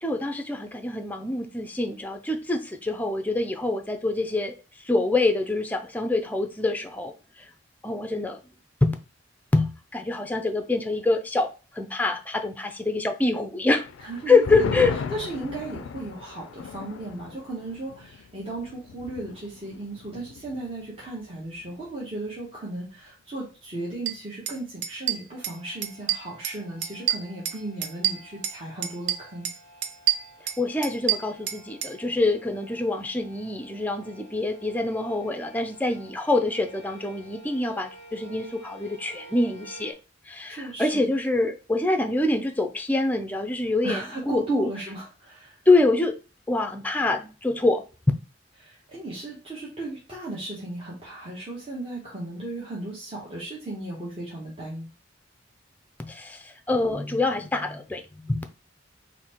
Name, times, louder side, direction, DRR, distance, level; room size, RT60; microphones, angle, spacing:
voice 1, 0.0-4.5 4.8-7.5 7.8-8.4 8.8-8.9 9.5-11.5 11.7-13.9 14.3-14.9 30.6-39.9 40.3-44.7 45.7-46.2 46.5-47.8 56.0-58.4, left 2 dB, 10° left, 0.5 m, -25 dB
sound 1, 13.9-20.8 21.1-21.2 21.6-22.0, left 5 dB, 85° left, 0.4 m, -36 dB
voice 2, 14.0-14.8 15.1-29.5 40.5-41.0 43.8-45.6 48.6-54.9, right 2 dB, 30° right, 1.2 m, -36 dB
sound 2, 24.1-24.2 24.5-24.6 24.8-25.6 25.8-26.6 26.8-28.6 28.8-29.6 29.8-31.9, right 11 dB, 65° right, 0.5 m, -27 dB
sound 3, 25.3-39.9, right 1 dB, 45° right, 2.5 m, -50 dB
4.2 x 2.7 x 4.4 m
head